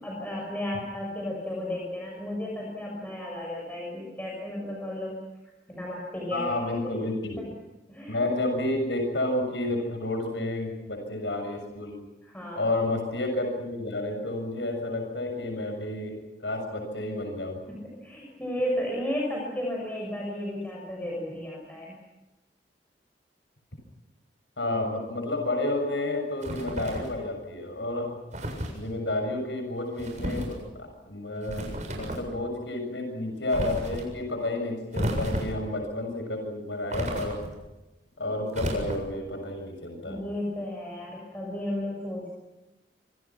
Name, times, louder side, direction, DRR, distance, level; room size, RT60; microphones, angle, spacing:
voice 1, 0.0-5.2 5.7-6.9 7.4-7.5 7.9-8.2 12.2-12.7 17.7-22.0 40.1-42.3, left 1 dB, 10° left, -2 dB, 6.3 m, -33 dB
voice 2, 6.3-7.4 8.1-12.0 12.6-16.1 16.4-17.6 24.6-28.2 28.7-37.4 38.2-40.2, left 2 dB, 85° left, 4 dB, 6.9 m, -30 dB
sound 1, 26.4-27.2 28.3-28.8 30.0-30.6 31.4-32.3 33.5-34.1 34.9-35.7 36.9-37.6 38.5-39.2, equal, 45° right, 7.4 m, -32 dB
27.5 x 25.5 x 6.1 m, 1.1 s
head